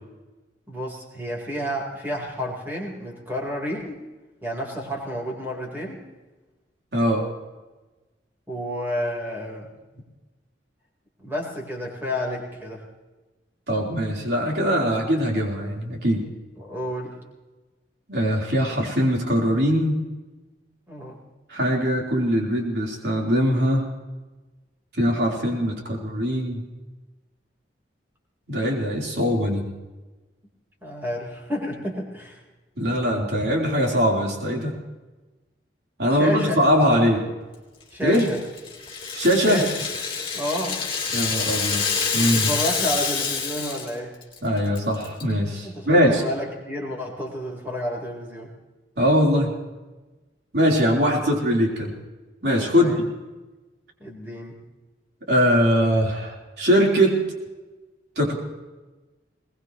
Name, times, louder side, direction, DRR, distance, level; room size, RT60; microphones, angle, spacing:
voice 1, 0.7-4.0 4.4-6.0 8.5-9.7 11.2-12.8 16.6-17.1 20.9-21.2 30.8-32.4 36.1-37.1 37.9-38.4 39.4-39.7 40.3-40.8 42.2-44.2 45.6-48.5 51.0-51.1 52.8-53.0 54.0-54.6, equal, 10° right, -2 dB, 4.1 m, -30 dB
voice 2, 6.9-7.3 13.7-16.2 18.1-20.0 21.5-23.8 24.9-26.6 28.5-29.7 32.8-34.7 36.0-37.2 38.0-38.3 39.1-39.6 41.1-42.5 44.4-46.2 49.0-49.5 50.5-51.9 52.4-52.9 55.3-57.2 58.2-58.4, equal, 60° right, -1 dB, 4.0 m, -21 dB
Rattle (instrument), 38.1-43.9 44.2-44.4 44.7-45.2, left 5 dB, 30° left, 3.6 m, -27 dB
22.0 x 20.0 x 3.1 m, 1.2 s
head